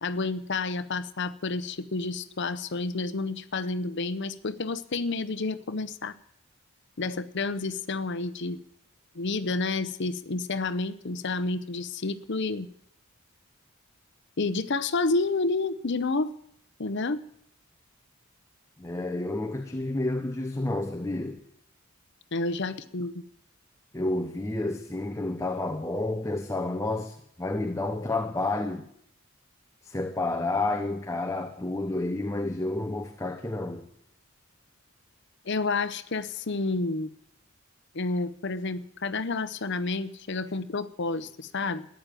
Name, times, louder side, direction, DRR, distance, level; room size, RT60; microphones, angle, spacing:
voice 1, 0.0-6.1 7.0-8.6 9.1-12.7 14.4-16.3 16.8-17.2 22.3-23.2 35.5-37.1 37.9-41.9, left 3 dB, 55° left, 0.8 m, -30 dB
voice 2, 18.8-21.4 23.9-28.9 29.8-33.9, left 2 dB, 15° left, 0.8 m, -30 dB
14.0 x 10.5 x 9.1 m
head